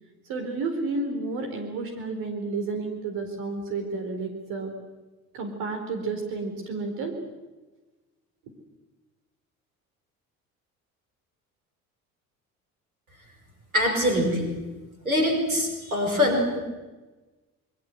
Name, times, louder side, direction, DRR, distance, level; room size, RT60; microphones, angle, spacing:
voice 1, 0.3-4.7 5.3-7.1, right 3 dB, 55° right, 4 dB, 4.4 m, -31 dB
voice 2, 13.7-14.5 15.1-16.6, left 1 dB, 85° right, 3 dB, 5.6 m, -23 dB
27.0 x 23.0 x 8.1 m, 1.2 s
figure-of-eight pair, 55°, 42 cm